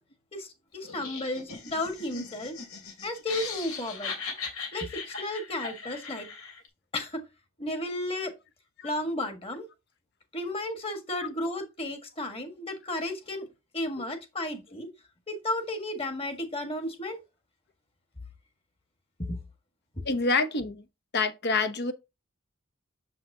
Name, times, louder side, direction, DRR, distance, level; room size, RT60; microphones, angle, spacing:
voice 1, 0.3-2.6 3.0-4.1 4.7-6.3 6.9-7.2 7.6-8.3 8.8-9.7 10.3-13.5 13.7-14.9 15.3-17.2 19.2-19.4 20.0-20.1, left 1 dB, 25° left, 1.5 m, -33 dB
Laughter, 0.8-6.7, left 5 dB, 75° left, 2.9 m, -39 dB
voice 2, 20.0-20.8 21.1-21.9, left 3 dB, 50° left, 0.9 m, -27 dB
7.4 x 5.8 x 2.7 m
head